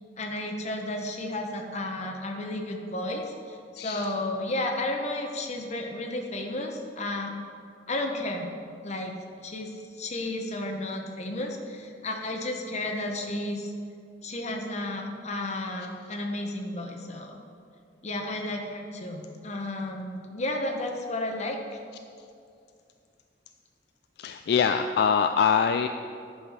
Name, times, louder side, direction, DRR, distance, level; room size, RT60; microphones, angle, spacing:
voice 1, 0.2-7.3 7.9-8.5 8.8-9.2 9.4-9.7 10.0-13.7 14.2-17.4 18.0-21.6, left 1 dB, 40° left, 2 dB, 1.0 m, -32 dB
voice 2, 3.8-4.1 24.2-25.9, left 6 dB, 65° left, 8 dB, 0.3 m, -24 dB
10.5 x 5.7 x 4.9 m, 2.4 s
head